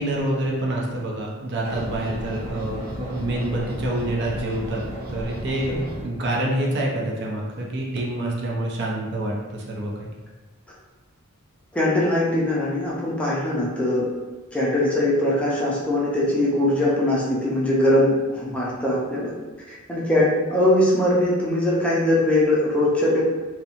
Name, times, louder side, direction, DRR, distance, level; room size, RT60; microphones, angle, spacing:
voice 1, 0.0-4.8 5.1-10.1, right 1 dB, 55° right, -2 dB, 0.5 m, -27 dB
sound 1, 1.6-6.0, equal, 80° right, 0.8 m, -33 dB
voice 2, 11.7-14.1 14.5-19.3 19.7-23.2, left 1 dB, 5° left, -7 dB, 0.5 m, -21 dB
2.9 x 2.1 x 2.5 m, 1.2 s
head